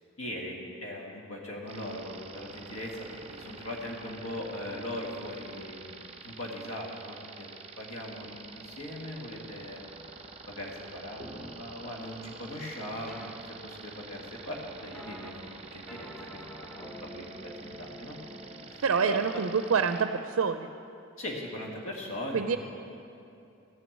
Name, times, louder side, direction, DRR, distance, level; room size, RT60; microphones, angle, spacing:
voice 1, 0.2-7.5 7.8-9.8 10.2-15.3 15.7-18.2 18.7-19.2 21.2-22.6, left 1 dB, 75° left, -1 dB, 1.7 m, -40 dB
sound 1, 1.7-20.0, right 5 dB, 30° right, 0.7 m, -47 dB
sound 2, 11.2-11.6 13.1-13.3 14.9-15.3 15.9-18.7, equal, 5° left, 0.8 m, -46 dB
voice 2, 18.8-20.7 22.3-22.6, right 6 dB, 70° right, 8 dB, 0.4 m, -27 dB
15.0 x 6.1 x 8.4 m, 2.7 s
head